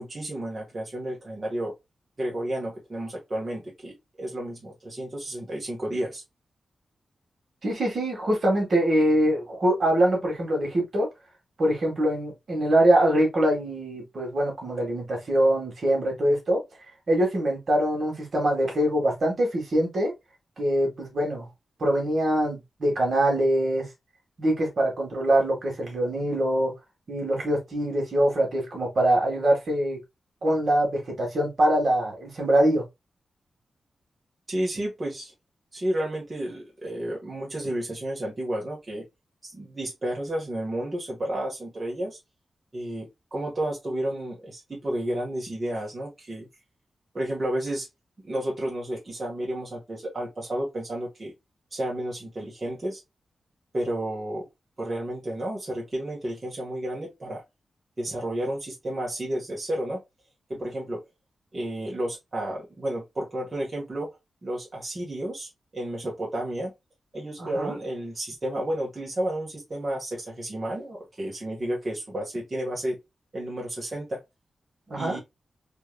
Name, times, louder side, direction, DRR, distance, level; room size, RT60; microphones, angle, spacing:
voice 1, 0.0-1.7 2.2-6.2 34.5-35.3 35.7-39.1 39.4-42.2 42.7-46.5 47.1-47.9 48.2-51.3 51.7-53.0 53.7-54.5 54.8-57.4 58.0-60.0 60.5-61.0 61.5-64.1 64.4-66.7 67.1-73.0 73.3-74.2 74.9-75.2, right 1 dB, 35° right, 1.6 m, -31 dB
voice 2, 7.6-11.1 11.6-16.6 17.1-20.1 20.6-21.5 21.8-23.9 24.4-26.7 27.1-30.0 30.4-32.8 67.4-67.8 74.9-75.2, right 1 dB, 60° right, 1.8 m, -23 dB
3.4 x 3.2 x 2.3 m
wide cardioid pair, 85°, 0 cm